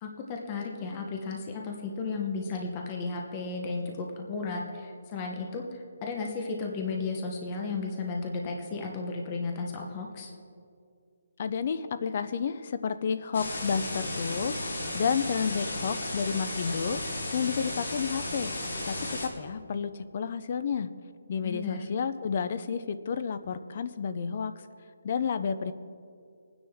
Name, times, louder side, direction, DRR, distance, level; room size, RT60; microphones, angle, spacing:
voice 1, 0.0-10.3 21.4-21.9, left 4 dB, 20° left, 1 dB, 0.9 m, -34 dB
voice 2, 11.4-14.6 14.9-17.0 17.3-18.5 18.9-20.9 21.3-24.5 25.0-25.7, left 6 dB, 35° left, 12 dB, 0.6 m, -31 dB
sound 1, 13.3-19.3, left 1 dB, 60° left, 3.3 m, -34 dB
22.0 x 9.6 x 3.5 m, 2.3 s
hypercardioid pair, 175°, 0 cm